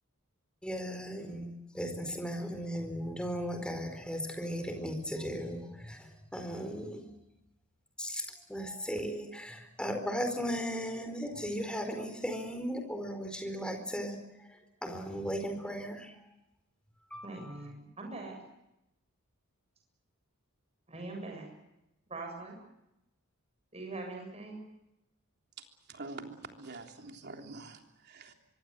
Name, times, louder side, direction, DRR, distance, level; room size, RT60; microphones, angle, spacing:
voice 1, 0.6-7.1 8.0-8.2 8.5-16.1 17.1-17.6, equal, 5° left, 6 dB, 4.5 m, -37 dB
voice 2, 17.2-18.4 20.9-21.5 22.1-22.6 23.7-24.6, right 2 dB, 30° right, 2 dB, 7.2 m, -42 dB
voice 3, 25.9-28.3, right 3 dB, 50° right, 4 dB, 3.4 m, -46 dB
25.0 x 24.5 x 7.9 m, 0.88 s
head